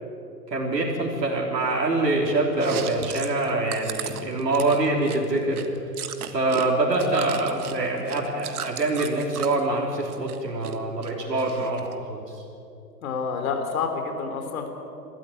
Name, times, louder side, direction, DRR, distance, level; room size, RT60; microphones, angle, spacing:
voice 1, 0.5-5.6 6.3-12.4, right 2 dB, 80° right, -2 dB, 3.6 m, -25 dB
Chewing mastication, 2.5-6.7 6.9-9.6 10.0-10.8 11.0-11.9, right 8 dB, 60° right, 1.7 m, -35 dB
voice 2, 13.0-14.7, left 5 dB, 55° left, 5 dB, 3.7 m, -28 dB
23.0 x 13.5 x 9.1 m, 2.7 s
hypercardioid pair, 120°, 49 cm